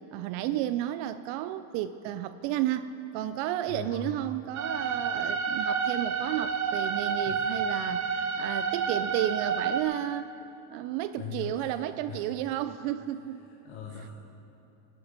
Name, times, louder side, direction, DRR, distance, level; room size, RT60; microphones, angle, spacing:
voice 1, 0.1-10.3 10.7-13.5, right 12 dB, 65° right, 12 dB, 0.6 m, -32 dB
voice 2, 3.7-4.1 7.2-7.4 11.2-11.8 12.1-12.3 13.4-14.1, left 7 dB, 70° left, -1 dB, 1.5 m, -40 dB
sound 1, 4.6-9.8, right 6 dB, 35° right, 0.9 m, -29 dB
16.5 x 7.8 x 5.1 m, 2.9 s
supercardioid pair, 115°, 50 cm